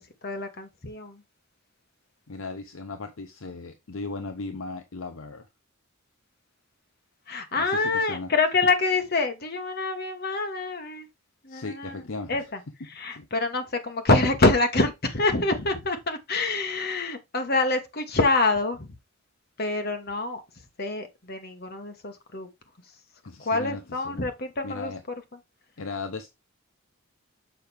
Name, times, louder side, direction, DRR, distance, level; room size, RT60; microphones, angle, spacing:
voice 1, 0.2-1.2 7.3-11.1 11.4-12.0 12.3-12.6 12.9-18.9 19.6-20.4 20.8-22.5 23.4-24.9, left 3 dB, 45° left, 1.4 m, -26 dB
voice 2, 2.3-5.5 7.6-8.3 11.5-12.5 13.1-13.3 23.2-24.3 24.6-25.0 25.8-26.3, left 3 dB, 65° left, 0.7 m, -37 dB
6.8 x 5.7 x 3.4 m
head